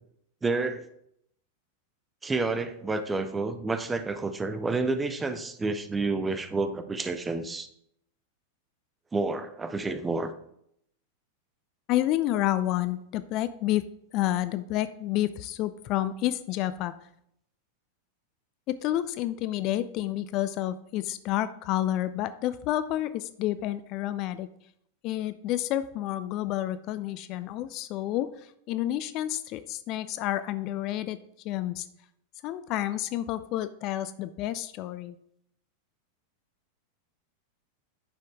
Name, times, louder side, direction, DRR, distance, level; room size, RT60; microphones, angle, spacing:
voice 1, 0.4-0.8 2.2-7.7 9.1-10.3, right 3 dB, 15° right, 10 dB, 0.8 m, -29 dB
voice 2, 11.9-13.8 14.1-16.9 18.7-24.5 25.0-31.2 31.4-31.9 32.4-35.2, left 13 dB, 40° left, 13 dB, 0.4 m, -29 dB
9.9 x 6.7 x 3.6 m, 0.74 s
figure-of-eight pair, 90°, 0 cm